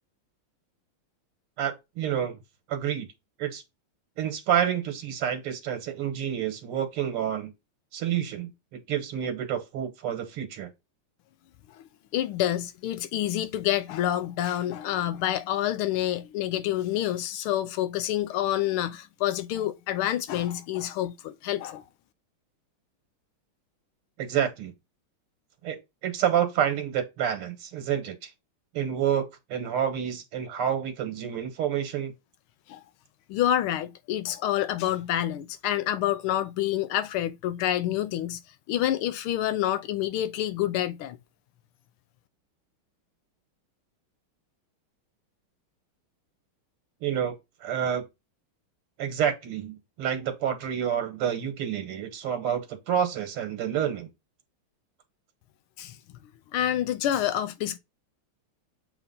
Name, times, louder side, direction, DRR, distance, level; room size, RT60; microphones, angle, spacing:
voice 1, 1.6-2.4 2.7-3.1 3.4-3.6 4.2-7.5 7.9-8.5 8.9-10.7 24.2-24.7 25.6-25.8 26.0-28.3 28.7-32.1 47.0-47.3 47.6-48.0 49.0-54.1, right 9 dB, 90° right, 2.2 m, -28 dB
voice 2, 12.1-21.8 32.7-32.8 33.3-38.4 38.7-41.2 55.8-56.0 56.5-57.8, left 12 dB, 90° left, 1.5 m, -28 dB
7.9 x 3.0 x 5.5 m
omnidirectional pair, 2.4 m